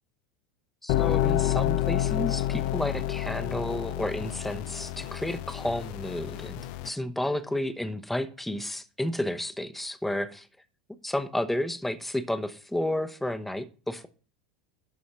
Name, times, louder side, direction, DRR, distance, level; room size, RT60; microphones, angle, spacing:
voice 1, 0.8-10.5 11.0-14.1, left 1 dB, 5° left, 9 dB, 0.9 m, -31 dB
sound 1, 0.9-6.9, left 14 dB, 50° left, 0.5 m, -29 dB
12.0 x 4.1 x 5.9 m, 0.38 s
figure-of-eight pair, 80°, 4 cm